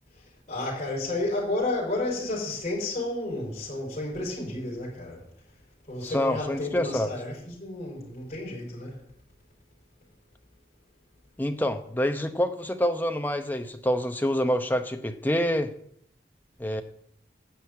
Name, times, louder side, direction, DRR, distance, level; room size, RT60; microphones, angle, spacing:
voice 1, 0.5-5.2 5.9-8.9, left 2 dB, 40° left, 5.0 m, -31 dB
voice 2, 6.0-7.1 11.4-15.7 16.6-16.8, equal, 10° left, 0.7 m, -27 dB
10.5 x 6.4 x 8.4 m
head